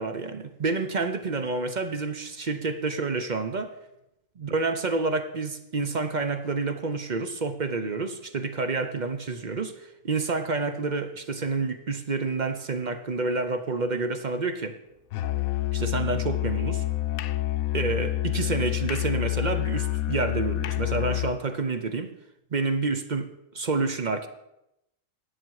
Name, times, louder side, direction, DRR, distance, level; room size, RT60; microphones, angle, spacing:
voice 1, 0.0-3.7 4.4-14.8 15.7-16.8 17.7-22.1 22.5-24.3, right 3 dB, 40° right, 9 dB, 0.7 m, -29 dB
Musical instrument, 15.1-21.4, left 17 dB, 75° left, 1.0 m, -28 dB
14.5 x 9.5 x 4.7 m, 0.86 s
omnidirectional pair, 1.6 m